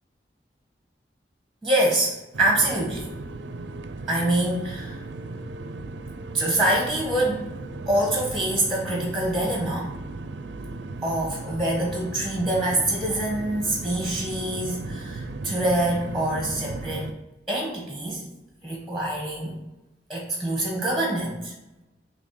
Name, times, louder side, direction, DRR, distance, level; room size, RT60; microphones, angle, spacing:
voice 1, 1.6-3.1 4.1-5.0 6.3-7.5 7.9-9.9 11.0-17.1 17.5-18.2 18.6-19.5 20.1-21.5, right 1 dB, ahead, -2 dB, 1.2 m, -25 dB
sound 1, 2.3-17.1, right 2 dB, 85° right, 0.5 m, -36 dB
6.3 x 3.2 x 4.8 m, 0.97 s
head